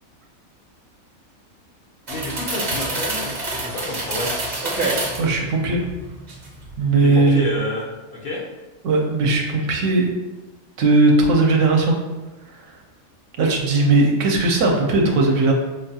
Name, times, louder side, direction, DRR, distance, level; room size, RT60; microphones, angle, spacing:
voice 1, 2.1-4.3 7.0-7.9 8.1-8.4, left 2 dB, 55° left, -3 dB, 0.8 m, -29 dB
sound 1, 2.1-5.3 5.8-6.7 7.1-7.3, right 2 dB, 40° right, 0.8 m, -27 dB
voice 2, 5.2-5.8 6.8-7.4 8.8-10.1 10.8-11.9 13.4-15.5, right 2 dB, 70° right, 1 dB, 0.9 m, -18 dB
5.1 x 2.3 x 2.7 m, 1.1 s
omnidirectional pair, 1.4 m